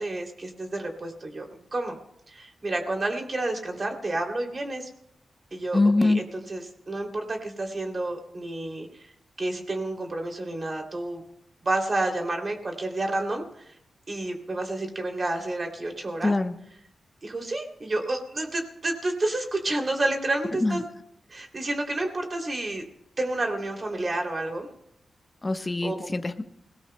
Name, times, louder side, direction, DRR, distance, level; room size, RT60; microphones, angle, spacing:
voice 1, 0.0-1.5 1.7-2.0 2.3-4.9 5.5-6.2 6.5-8.9 9.4-11.2 11.6-13.7 14.1-16.3 17.2-20.8 21.3-22.8 23.2-24.7 25.8-25.9, right 2 dB, 45° right, 2 dB, 2.8 m, -30 dB
voice 2, 5.7-6.2 16.2-16.5 20.6-20.8 25.4-26.4, left 2 dB, 30° left, 7 dB, 1.0 m, -23 dB
29.0 x 18.0 x 2.2 m, 0.76 s
cardioid pair, 65°, 0 cm